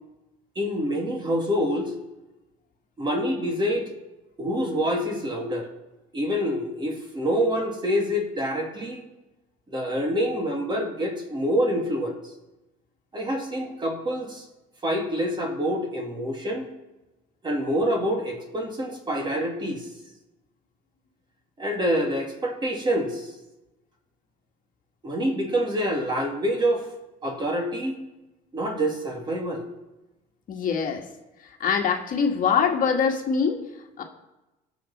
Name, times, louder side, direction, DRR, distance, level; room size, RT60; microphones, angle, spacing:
voice 1, 0.5-1.9 3.0-3.9 4.4-5.7 6.1-9.1 9.7-12.2 13.1-14.5 14.8-16.7 17.4-19.9 21.6-23.3 25.0-26.9 27.2-28.0 28.5-29.6, equal, 25° right, 1 dB, 2.8 m, -26 dB
voice 2, 30.5-31.0 31.4-33.6 34.0-34.1, left 6 dB, 45° left, 2 dB, 1.8 m, -23 dB
20.5 x 7.3 x 4.3 m, 1.0 s
supercardioid pair, 110°, 19 cm